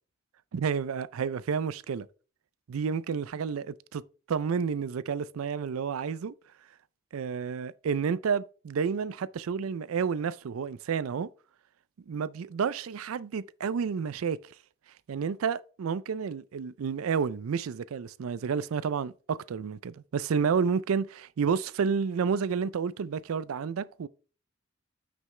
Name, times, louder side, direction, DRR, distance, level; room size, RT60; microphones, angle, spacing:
voice 1, 0.5-2.1 2.7-4.0 4.3-6.3 7.1-11.3 12.1-14.4 15.1-24.1, right 6 dB, 80° right, 0.4 m, -30 dB
9.3 x 6.1 x 3.2 m
head